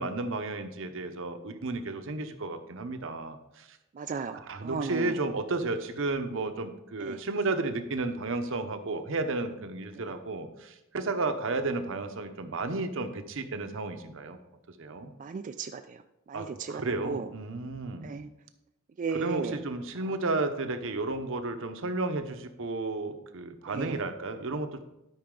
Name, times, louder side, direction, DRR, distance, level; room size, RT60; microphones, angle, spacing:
voice 1, 0.0-3.8 4.3-14.4 14.8-15.1 16.3-18.2 19.2-24.8, right 3 dB, 70° right, 8 dB, 0.8 m, -33 dB
voice 2, 4.0-5.2 7.0-7.2 15.2-16.0 16.3-17.3 18.0-18.3 19.0-19.6 23.7-24.0, right 5 dB, 40° right, 7 dB, 0.3 m, -35 dB
12.0 x 5.7 x 3.8 m, 0.90 s
head